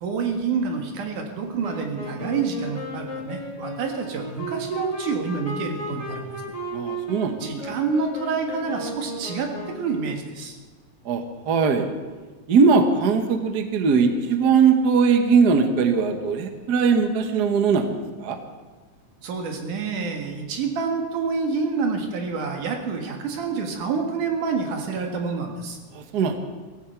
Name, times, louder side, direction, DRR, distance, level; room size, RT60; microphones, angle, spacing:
voice 1, 0.0-6.3 7.4-10.6 19.2-25.8, right 5 dB, 75° right, 2 dB, 3.3 m, -28 dB
Wind instrument woodwind instrument, 1.6-10.0, right 1 dB, 15° left, 1.9 m, -34 dB
voice 2, 6.7-7.7 11.0-11.9 12.5-17.9 18.2-18.4 25.9-26.4, right 5 dB, 60° right, 6 dB, 1.0 m, -20 dB
17.0 x 15.5 x 4.6 m, 1.3 s
omnidirectional pair, 3.6 m